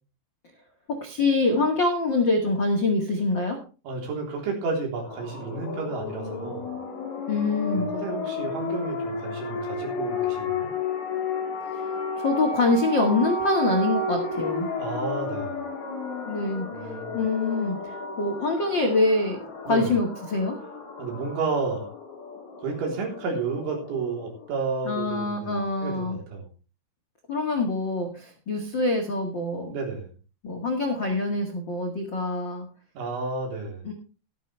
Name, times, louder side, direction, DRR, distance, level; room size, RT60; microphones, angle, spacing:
voice 1, 0.9-3.6 7.3-7.9 12.2-14.7 16.2-20.6 24.8-26.2 27.3-29.7 30.4-32.6 33.8-33.9, left 3 dB, 90° left, 2 dB, 1.0 m, -25 dB
voice 2, 3.8-6.7 7.7-10.7 14.8-15.6 16.7-17.2 19.7-19.9 21.0-21.9 22.6-26.5 29.7-30.1 33.0-33.8, right 4 dB, 70° right, 0 dB, 6.0 m, -31 dB
sound 1, 5.0-24.5, left 2 dB, 65° left, 5.9 m, -33 dB
14.5 x 12.5 x 3.4 m, 0.35 s
omnidirectional pair, 5.5 m